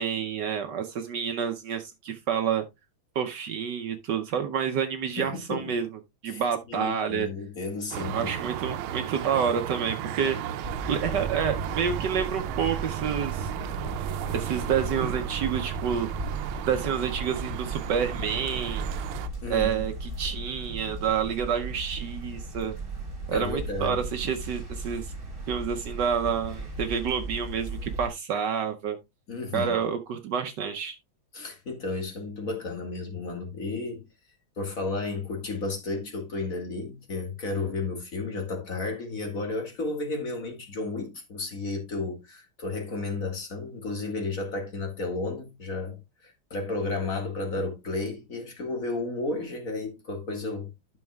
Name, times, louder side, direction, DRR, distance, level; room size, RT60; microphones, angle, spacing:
voice 1, 0.0-2.6 3.1-5.9 6.2-7.3 8.0-10.4 10.8-13.5 14.3-16.1 16.6-18.9 19.5-22.7 23.3-25.1 25.5-29.0 29.5-31.0, right 7 dB, 65° right, 1.2 m, -28 dB
voice 2, 5.2-5.8 6.3-6.4 6.7-8.3 19.4-19.9 23.3-24.0 29.3-29.7 31.3-34.1 34.6-46.0 46.2-51.0, left 3 dB, 40° left, 2.2 m, -33 dB
sound 1, 7.9-19.3, right 11 dB, 85° right, 1.5 m, -34 dB
sound 2, 10.6-28.1, right 2 dB, 25° right, 3.0 m, -36 dB
12.5 x 6.3 x 2.3 m
omnidirectional pair, 2.2 m